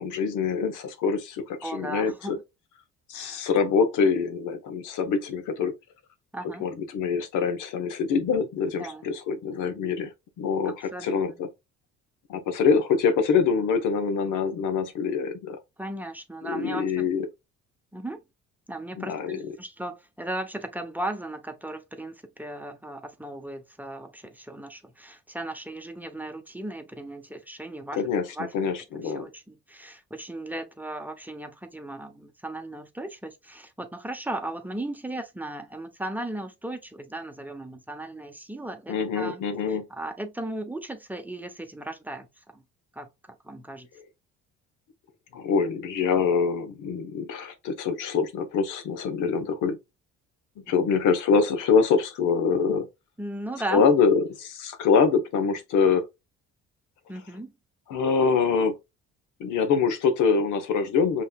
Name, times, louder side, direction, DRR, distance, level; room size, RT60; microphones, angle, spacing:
voice 1, 0.0-2.4 3.1-5.7 6.6-10.1 10.4-11.5 12.3-15.6 16.4-17.3 19.0-19.4 28.0-28.3 28.5-29.3 38.9-39.9 45.3-49.8 50.7-52.9 53.7-56.0 57.9-58.8 59.4-61.2, left 5 dB, 75° left, 1.2 m, -24 dB
voice 2, 1.6-2.4 3.1-3.5 6.3-6.7 8.7-9.0 10.6-11.4 15.8-17.1 17.9-18.2 18.7-28.0 28.3-28.7 29.0-39.4 39.7-42.6 42.9-43.9 50.7-50.9 53.2-53.9 57.1-57.5, right 1 dB, 5° right, 1.0 m, -36 dB
5.5 x 3.3 x 2.4 m
supercardioid pair, 80°, 31 cm